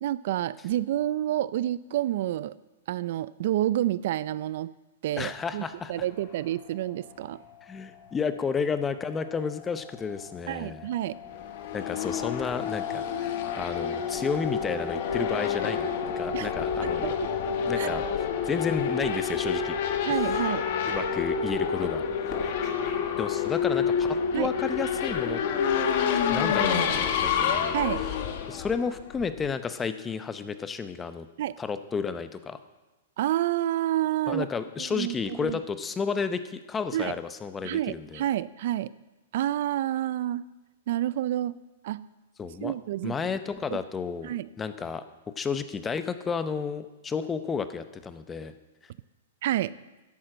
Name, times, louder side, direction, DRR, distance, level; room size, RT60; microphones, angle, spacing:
voice 1, 0.0-2.5 2.9-4.7 5.0-5.6 5.9-7.4 10.5-11.1 16.3-16.5 16.8-17.1 17.7-17.9 20.0-20.6 24.3-24.5 27.7-28.0 31.4-31.5 33.2-34.5 34.8-35.6 36.9-37.1 37.6-38.9 39.3-40.4 40.9-41.5 41.8-42.1 42.6-43.2 43.7-43.8 44.2-44.5 49.4-49.7, right 13 dB, 55° right, 18 dB, 0.4 m, -29 dB
voice 2, 5.2-6.1 7.6-10.9 11.7-13.3 13.5-15.9 16.2-17.1 17.7-18.0 18.4-19.7 20.8-22.0 23.2-25.4 26.3-27.8 28.5-31.3 31.6-32.6 34.3-38.2 42.4-42.7 43.0-45.0 45.4-48.5, left 5 dB, 10° left, 11 dB, 0.7 m, -32 dB
sound 1, 5.3-23.3, left 7 dB, 30° left, 2.2 m, -41 dB
Race car auto racing / Accelerating revving vroom, 11.3-29.5, left 7 dB, 50° left, 1.5 m, -28 dB
11.5 x 10.5 x 7.6 m, 1.1 s
hypercardioid pair, 155°, 0 cm